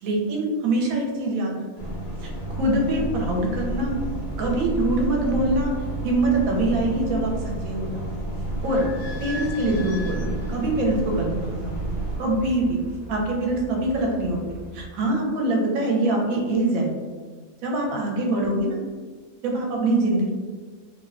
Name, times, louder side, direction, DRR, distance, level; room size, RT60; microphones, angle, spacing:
voice 1, 0.0-1.5 1.8-1.9 2.2-3.9 4.4-5.7 6.0-7.3 7.6-8.1 8.6-8.8 9.2-11.9 12.2-12.8 13.1-16.9 17.6-18.8 19.4-20.3, right 2 dB, 80° right, -1 dB, 1.0 m, -24 dB
sound 1, 1.8-12.2, right 1 dB, 60° left, 0.5 m, -31 dB
Idling / Squeak, 8.4-14.8, right 1 dB, 85° left, 1.3 m, -39 dB
2.8 x 2.1 x 2.4 m, 1.5 s
omnidirectional pair, 1.5 m